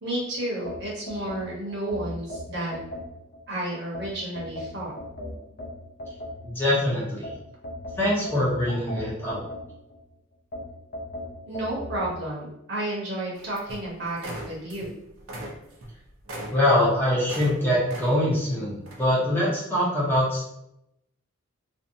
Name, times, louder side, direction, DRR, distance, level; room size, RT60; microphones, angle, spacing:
voice 1, 0.0-2.8 3.5-4.9 11.4-14.9, right 1 dB, 55° right, -5 dB, 0.9 m, -31 dB
sound 1, 0.6-3.4 3.9-6.7 7.2-10.0 10.5-12.1, left 1 dB, 50° left, 0.5 m, -37 dB
voice 2, 6.4-7.3 8.0-9.4 16.5-20.4, left 1 dB, 10° left, -7 dB, 0.7 m, -23 dB
sound 2, 13.3-13.9 14.1-14.9 15.2-17.6 17.9-18.4 18.9-19.1, right 1 dB, 70° right, 0.6 m, -39 dB
2.6 x 2.2 x 2.6 m, 0.80 s
head